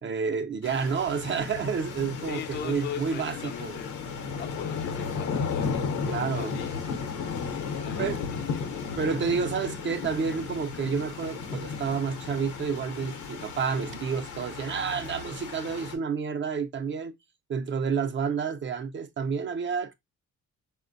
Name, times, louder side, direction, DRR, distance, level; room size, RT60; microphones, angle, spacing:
voice 1, 0.0-3.8 6.1-6.5 8.0-8.2 9.0-17.1 17.5-19.9, right 6 dB, 40° right, 0.5 m, -30 dB
sound 1, 0.6-16.0, left 5 dB, 75° left, 0.8 m, -34 dB
voice 2, 2.2-4.0 4.4-6.8 7.4-8.8, left 9 dB, 35° left, 0.4 m, -40 dB
4.2 x 2.1 x 2.5 m
cardioid pair, 90°, 30 cm